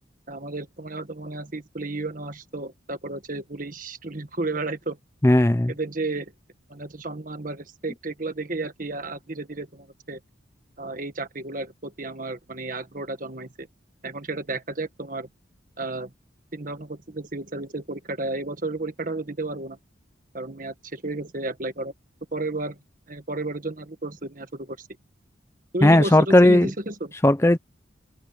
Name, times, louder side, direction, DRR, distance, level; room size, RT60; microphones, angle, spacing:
voice 1, 0.3-5.0 5.7-6.3 6.7-10.2 10.8-13.7 14.0-15.3 15.8-16.1 16.5-19.8 20.3-21.9 22.3-22.8 23.1-24.9 25.7-27.1, right 2 dB, 40° right, 1.6 m, -32 dB
voice 2, 5.2-5.7 25.8-26.7 27.2-27.6, left 1 dB, 15° left, 0.5 m, -16 dB
head